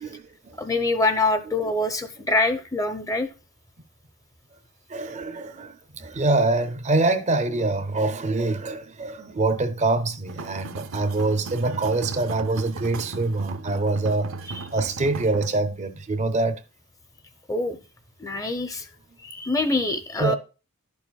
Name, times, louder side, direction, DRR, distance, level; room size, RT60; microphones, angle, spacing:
voice 1, 0.6-3.3 14.5-14.7 17.5-17.8 18.2-18.9 19.2-20.4, left 2 dB, 15° left, 0.7 m, -25 dB
voice 2, 4.9-14.3 14.7-16.6 20.2-20.4, right 2 dB, 35° right, 0.5 m, -25 dB
sound 1, 10.3-15.5, right 3 dB, 75° right, 0.7 m, -36 dB
11.0 x 7.0 x 2.3 m
head